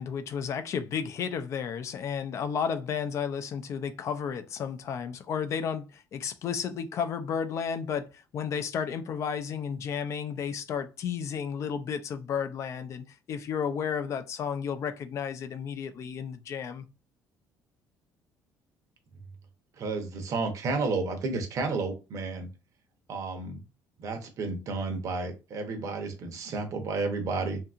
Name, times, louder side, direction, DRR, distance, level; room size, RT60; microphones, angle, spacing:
voice 1, 0.0-16.8, left 7 dB, 45° left, 0.4 m, -32 dB
voice 2, 19.8-22.5 23.1-23.6 24.0-27.6, right 3 dB, 50° right, 0.7 m, -31 dB
2.7 x 2.6 x 2.4 m
cardioid pair, 125°, 7 cm